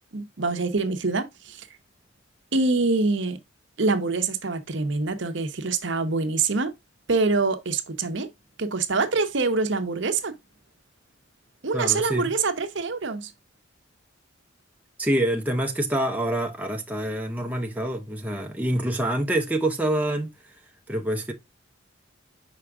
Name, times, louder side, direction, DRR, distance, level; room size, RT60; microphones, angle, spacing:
voice 1, 0.1-1.7 2.5-3.4 3.8-6.7 7.1-8.3 8.6-10.3 11.6-13.3, right 3 dB, 60° right, 0.9 m, -25 dB
voice 2, 11.7-12.3 15.0-20.3 20.9-21.3, right 1 dB, 5° right, 0.7 m, -26 dB
5.7 x 4.9 x 3.5 m
head